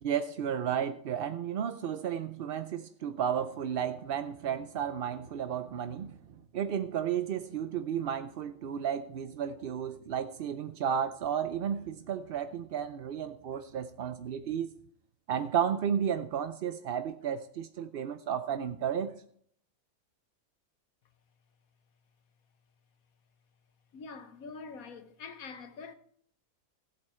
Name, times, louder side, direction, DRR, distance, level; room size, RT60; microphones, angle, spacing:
voice 1, 0.0-6.2 6.5-14.7 15.3-19.1, right 8 dB, 65° right, 0.5 m, -33 dB
voice 2, 23.9-25.9, left 4 dB, 70° left, 1.3 m, -45 dB
16.0 x 8.0 x 4.3 m
omnidirectional pair, 1.6 m